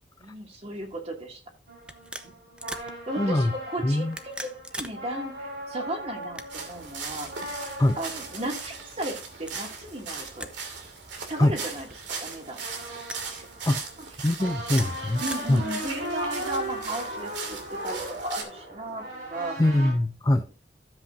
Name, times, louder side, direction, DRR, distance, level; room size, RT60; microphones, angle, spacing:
voice 1, 0.2-1.4 2.2-2.3 3.1-7.6 8.0-10.5 11.3-11.9 12.2-12.6 15.2-19.6, right 1 dB, 35° right, 2.5 m, -35 dB
sound 1, 0.8-1.0 1.8-2.9 4.0-5.0 5.3-5.4 6.2-6.8 7.5-7.7 8.5-8.7 9.4-9.7 10.4-10.6 10.8-10.9 11.9-12.4 13.0-13.3 14.4-15.4, right 1 dB, 5° right, 0.8 m, -40 dB
sound 2, 1.7-10.3 12.3-19.9, equal, 65° right, 4.9 m, -38 dB
voice 2, 3.2-3.5 3.8-4.1 7.8-8.0 11.4-11.5 13.7-13.8 14.2-15.2 15.5-15.6 19.6-20.4, left 1 dB, 20° left, 0.5 m, -22 dB
sound 3, 6.5-18.4, right 5 dB, 80° right, 2.5 m, -38 dB
13.0 x 7.9 x 2.7 m
head